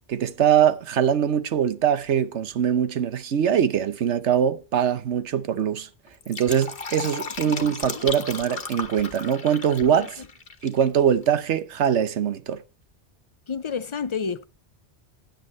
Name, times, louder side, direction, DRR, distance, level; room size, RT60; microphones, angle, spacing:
voice 1, 0.1-5.9 6.3-10.1 10.6-12.6, right 8 dB, 90° right, 1.2 m, -22 dB
Fill (with liquid), 6.1-10.9 11.1-11.2, left 4 dB, 55° left, 1.5 m, -35 dB
voice 2, 7.4-8.1 9.9-10.3 13.5-14.4, left 5 dB, 40° left, 0.5 m, -32 dB
10.5 x 9.2 x 4.3 m
omnidirectional pair, 1.1 m